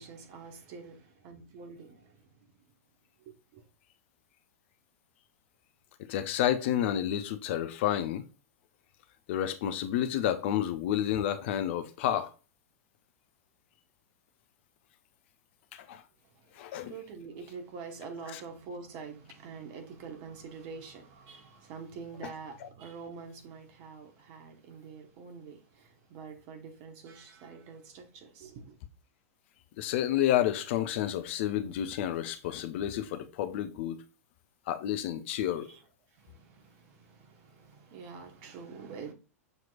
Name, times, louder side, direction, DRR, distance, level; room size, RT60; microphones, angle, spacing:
voice 1, 0.0-2.2 3.3-3.6 16.9-28.8 35.7-35.8 36.2-39.1, right 5 dB, 45° right, 1.0 m, -46 dB
voice 2, 6.1-8.2 9.3-12.3 15.7-16.0 16.6-16.9 18.3-18.4 29.8-34.0 34.7-35.7, left 11 dB, 50° left, 0.5 m, -30 dB
6.5 x 2.9 x 2.4 m
figure-of-eight pair, 95°, 8 cm